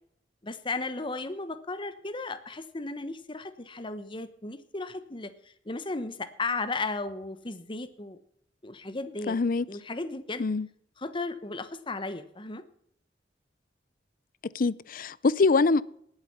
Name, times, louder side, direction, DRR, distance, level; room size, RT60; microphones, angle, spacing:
voice 1, 0.4-8.2 8.6-9.4 9.7-10.4 11.0-12.6, left 3 dB, 30° left, 1.1 m, -35 dB
voice 2, 9.3-9.6 10.4-10.7 14.5-15.8, left 3 dB, 50° left, 0.5 m, -24 dB
19.0 x 8.2 x 5.7 m
head